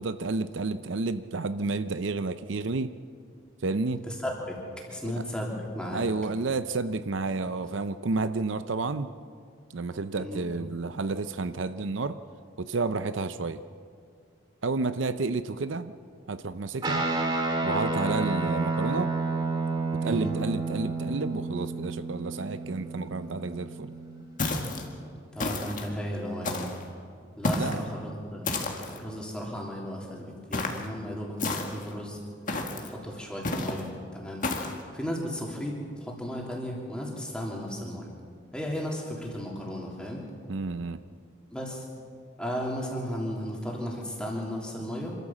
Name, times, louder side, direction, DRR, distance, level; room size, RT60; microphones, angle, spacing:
voice 1, 0.0-2.9 3.6-4.0 5.0-5.2 5.9-9.1 9.7-12.2 12.6-13.6 14.6-15.9 16.3-17.1 17.6-19.1 20.0-23.9 27.6-27.8 40.5-41.0, right 3 dB, 75° right, 12 dB, 0.6 m, -30 dB
voice 2, 4.1-4.6 4.9-6.0 10.2-10.4 20.0-20.3 25.3-26.7 27.4-32.2 32.7-34.5 34.9-38.1 38.5-40.2 41.5-41.8 42.4-45.1, equal, 5° left, -2 dB, 3.2 m, -35 dB
Guitar, 16.8-24.5, right 3 dB, 25° right, 2.2 m, -30 dB
sound 1, 24.4-24.9 25.4-25.9 26.4-26.9 27.4-27.8 28.5-29.0 30.5-30.9 31.4-31.9 32.5-32.9 33.4-33.8 34.4-34.8, left 2 dB, 40° left, 1.9 m, -30 dB
26.0 x 13.5 x 7.4 m, 2.2 s
head